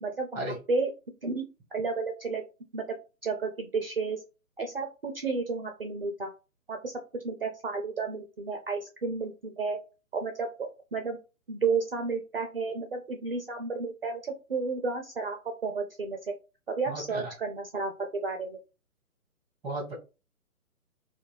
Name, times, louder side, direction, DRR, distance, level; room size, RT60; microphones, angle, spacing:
voice 1, 0.0-0.4 0.7-0.9 1.2-2.4 2.7-2.8 3.2-4.2 4.6-6.3 6.7-6.9 7.2-9.8 10.1-11.2 11.5-16.4 16.7-18.6, right 4 dB, 45° right, 4 dB, 0.4 m, -32 dB
voice 2, 16.9-17.3 19.6-19.9, right 1 dB, 5° right, -3 dB, 0.8 m, -34 dB
2.5 x 2.2 x 3.0 m, 0.31 s
figure-of-eight pair, 140°, 44 cm